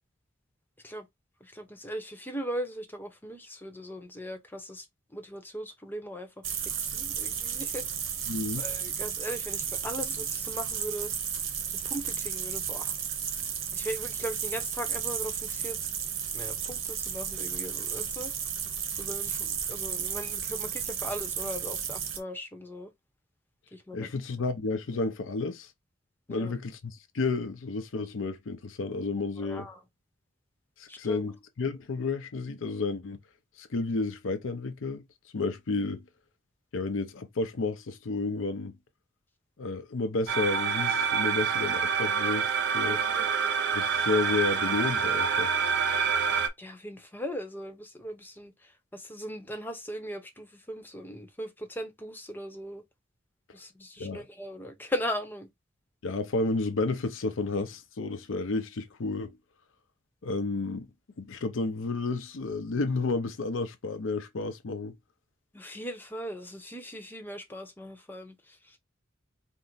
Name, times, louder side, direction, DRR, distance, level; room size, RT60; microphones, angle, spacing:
voice 1, 1.4-4.9 5.1-7.9 8.2-11.1 11.7-13.0 13.7-15.8 16.3-18.3 19.0-22.9 23.7-24.1 26.3-26.5 29.4-29.8 30.9-31.3 42.9-43.3 46.6-52.8 53.5-55.5 65.5-68.8, equal, 10° left, 0.7 m, -39 dB
sound 1, 6.4-22.2, right 8 dB, 90° right, 1.0 m, -33 dB
voice 2, 8.3-8.6 23.9-25.7 26.3-29.7 30.8-33.2 33.6-35.0 35.3-36.0 36.7-38.7 39.6-43.0 43.7-45.5 54.0-54.2 56.0-59.4 60.2-60.9 61.2-65.0, left 3 dB, 80° left, 0.6 m, -31 dB
sound 2, 40.3-46.5, right 6 dB, 65° right, 0.7 m, -27 dB
4.5 x 2.0 x 3.9 m
head